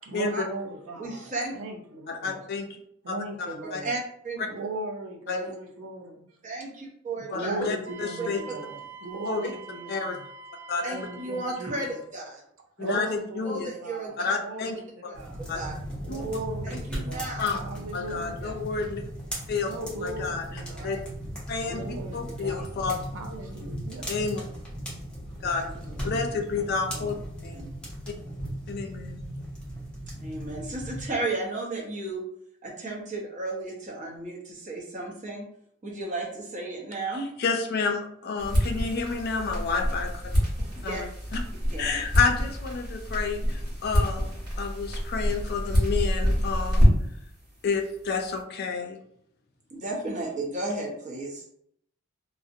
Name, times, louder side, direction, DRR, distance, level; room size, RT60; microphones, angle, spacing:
voice 1, 0.0-2.4 3.0-3.9 4.5-6.2 7.3-10.2 10.9-12.0 12.8-15.5 16.0-18.6 19.7-21.0 21.6-22.7 23.1-24.1 25.8-26.0 26.9-27.1, right 2 dB, 80° right, 1 dB, 0.5 m, -38 dB
voice 2, 1.0-1.5 3.8-4.0 4.2-4.4 5.3-5.5 6.4-7.6 8.2-8.3 10.8-12.4 13.5-14.1 15.1-15.7 16.3-17.4 20.8-21.0 25.4-25.7 26.0-26.2 27.5-27.7 30.1-32.2 32.6-35.5 35.8-37.3 40.9-41.0 41.7-41.9 49.7-51.4, right 2 dB, 35° right, -2 dB, 0.7 m, -34 dB
voice 3, 2.1-2.7 3.1-3.2 3.7-3.8 5.3-5.4 7.3-8.4 9.2-9.4 9.9-10.1 10.7-10.8 12.8-13.7 14.2-14.8 15.5-15.6 16.1-16.2 17.4-17.6 17.9-19.1 19.5-19.7 20.0-21.0 21.5-21.8 22.1-23.0 24.1-24.4 25.4-25.7 26.0-27.2 27.4-27.6 28.1-28.2 28.7-29.2 37.1-40.1 40.8-41.0 41.3-41.4 41.8-46.9 47.6-49.0, left 5 dB, 50° left, 4 dB, 0.4 m, -30 dB
Wind instrument woodwind instrument, 7.9-12.0, right 4 dB, 60° right, 1.0 m, -45 dB
sound 1, 15.1-31.0, equal, 5° left, 0.6 m, -37 dB
sound 2, 38.4-47.2, equal, 20° right, 1.2 m, -26 dB
2.5 x 2.0 x 2.5 m, 0.69 s
head